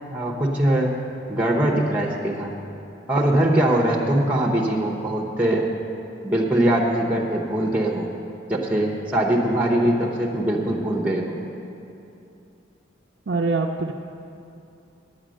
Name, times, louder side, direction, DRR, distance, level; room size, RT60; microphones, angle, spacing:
voice 1, 0.1-0.9 1.3-2.5 3.1-5.6 6.2-8.1 8.5-11.4, right 1 dB, 10° right, 0 dB, 0.8 m, -22 dB
voice 2, 13.3-13.9, right 3 dB, 60° right, -1 dB, 0.5 m, -23 dB
9.2 x 8.9 x 6.3 m, 2.7 s
head